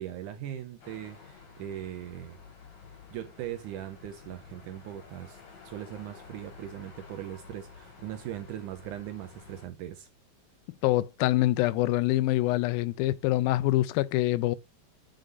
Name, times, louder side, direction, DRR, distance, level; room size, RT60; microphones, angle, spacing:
voice 1, 0.0-2.4 3.1-10.1, right 12 dB, 80° right, 1.9 m, -40 dB
sound 1, 0.8-9.7, left 5 dB, 55° left, 3.2 m, -51 dB
voice 2, 10.8-14.6, left 16 dB, 85° left, 2.3 m, -25 dB
6.4 x 3.8 x 5.2 m
omnidirectional pair, 4.1 m